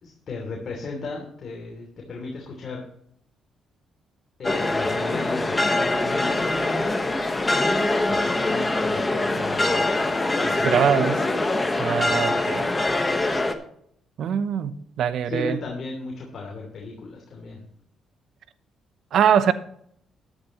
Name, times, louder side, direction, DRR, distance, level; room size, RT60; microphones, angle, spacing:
voice 1, 0.0-2.8 4.4-6.5 8.1-9.9 10.4-11.0 11.6-12.4 15.2-17.6, left 3 dB, 50° left, 3.0 m, -36 dB
sound 1, 4.4-13.5, left 2 dB, 20° left, 1.3 m, -23 dB
voice 2, 10.6-11.2 11.8-12.7 14.2-14.7 15.0-15.6 19.1-19.5, right 8 dB, 70° right, 0.8 m, -22 dB
13.5 x 10.0 x 3.1 m
cardioid pair, 90°, 0 cm